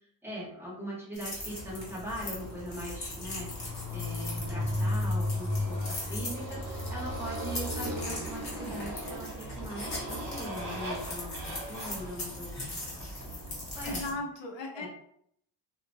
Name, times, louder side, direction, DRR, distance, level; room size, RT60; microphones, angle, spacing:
voice 1, 0.2-12.6 13.7-14.2 14.7-14.9, equal, 5° right, -7 dB, 0.9 m, -41 dB
sound 1, 1.1-14.1, left 2 dB, 35° left, 0.8 m, -41 dB
Motorcycle, 1.4-14.1, left 1 dB, 45° right, 0.8 m, -36 dB
voice 2, 13.8-14.9, left 2 dB, 70° left, 2 dB, 0.6 m, -36 dB
2.5 x 2.1 x 2.6 m, 0.69 s
wide cardioid pair, 150°, 47 cm